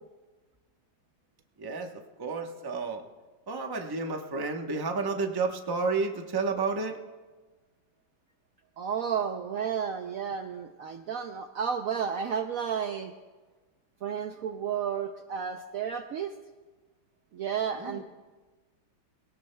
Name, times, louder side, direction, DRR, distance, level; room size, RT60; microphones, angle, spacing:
voice 1, 1.6-3.0 3.5-7.0 17.7-18.0, right 4 dB, 25° right, 3 dB, 0.4 m, -31 dB
voice 2, 8.8-13.1 14.0-16.3 17.3-18.0, right 7 dB, 85° right, 6 dB, 0.7 m, -32 dB
22.5 x 17.5 x 2.2 m, 1.3 s
omnidirectional pair, 2.1 m